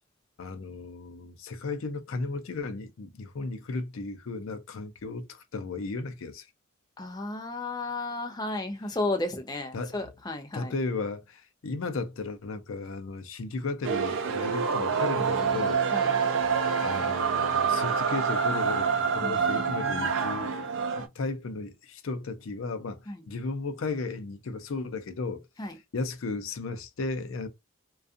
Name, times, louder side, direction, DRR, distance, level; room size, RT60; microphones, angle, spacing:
voice 1, 0.4-6.5 9.7-9.9 10.5-15.8 16.8-20.6 21.0-25.5 25.9-27.5, left 3 dB, 75° left, 0.5 m, -35 dB
voice 2, 7.0-10.7 15.9-16.1 19.2-20.5 23.1-23.2 25.6-25.8, left 2 dB, 20° left, 0.4 m, -34 dB
sound 1, 13.8-21.1, right 6 dB, 65° right, 0.4 m, -27 dB
2.5 x 2.3 x 2.4 m
head